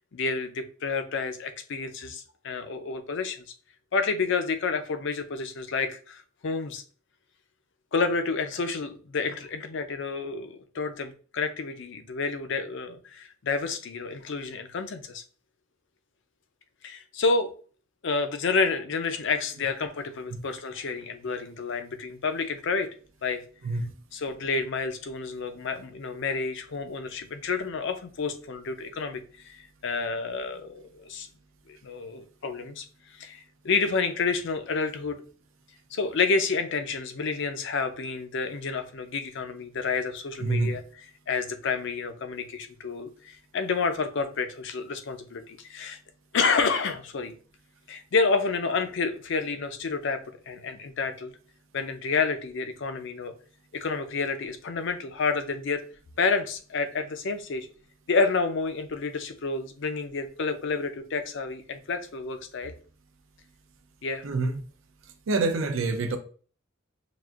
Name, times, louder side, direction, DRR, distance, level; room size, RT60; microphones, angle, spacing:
voice 1, 0.1-3.4 3.9-6.8 7.9-15.2 16.8-17.5 18.0-22.9 23.2-23.4 24.1-31.3 31.7-32.8 33.1-35.2 35.9-40.8 41.3-46.0 46.3-47.3 47.9-51.3 51.7-53.3 53.7-55.8 56.2-57.7 58.1-62.7 64.0-64.2, left 4 dB, 65° left, 0.5 m, -29 dB
voice 2, 40.4-40.8 64.2-64.6 65.3-66.2, right 3 dB, 75° right, 0.5 m, -26 dB
6.0 x 2.5 x 2.4 m
head